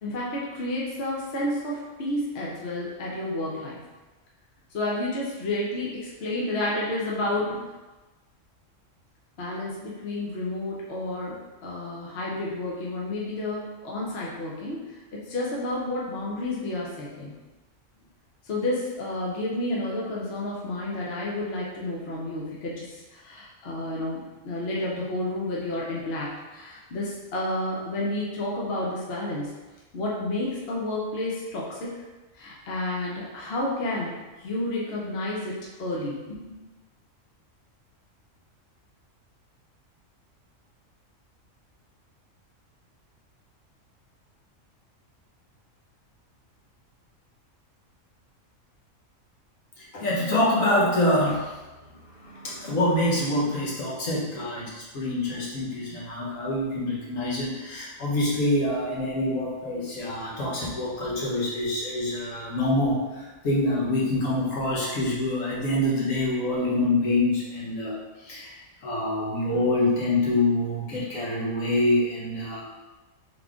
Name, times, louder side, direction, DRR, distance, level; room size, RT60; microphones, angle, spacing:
voice 1, 0.0-3.8 4.7-7.7 9.4-17.3 18.4-29.5 29.9-32.0 32.3-36.6, left 1 dB, 55° left, -5 dB, 1.0 m, -31 dB
voice 2, 49.8-51.6 52.2-68.6 68.8-72.6, left 1 dB, 80° left, -5 dB, 1.5 m, -26 dB
3.7 x 3.5 x 3.5 m, 1.2 s
omnidirectional pair, 1.4 m